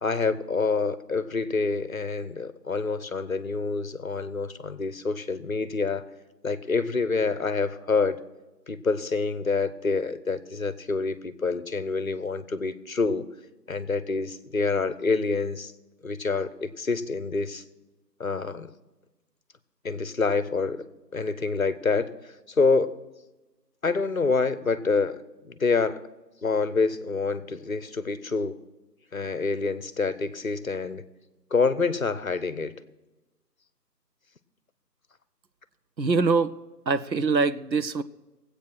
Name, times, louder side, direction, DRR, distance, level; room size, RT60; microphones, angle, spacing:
voice 1, 0.0-6.1 6.4-8.2 8.7-13.3 13.7-15.7 16.0-17.6 18.2-18.7 19.8-20.9 21.1-22.1 22.5-22.9 23.8-26.0 26.4-28.6 29.1-31.0 31.5-32.8, left 4 dB, 55° left, 16 dB, 0.8 m, -27 dB
voice 2, 36.0-36.5 36.9-38.0, right 4 dB, 90° right, 13 dB, 0.8 m, -23 dB
17.5 x 8.3 x 6.1 m, 1.1 s
figure-of-eight pair, 160°, 50 cm